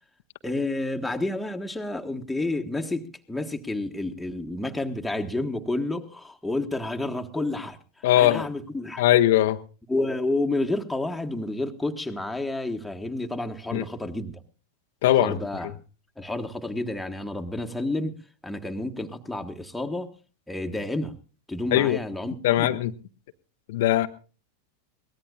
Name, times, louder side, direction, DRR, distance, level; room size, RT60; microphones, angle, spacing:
voice 1, 0.4-7.8 8.2-9.0 9.9-14.4 15.1-15.7 16.2-18.1 18.4-20.1 20.5-21.1 21.5-22.7, left 2 dB, 5° left, 3 dB, 1.5 m, -30 dB
voice 2, 8.0-8.5 9.0-9.6 13.7-13.8 15.0-15.4 21.7-22.0 22.4-22.9 23.7-24.1, left 13 dB, 55° left, 8 dB, 0.8 m, -20 dB
22.5 x 18.5 x 2.4 m, 0.36 s
figure-of-eight pair, 90°, 0 cm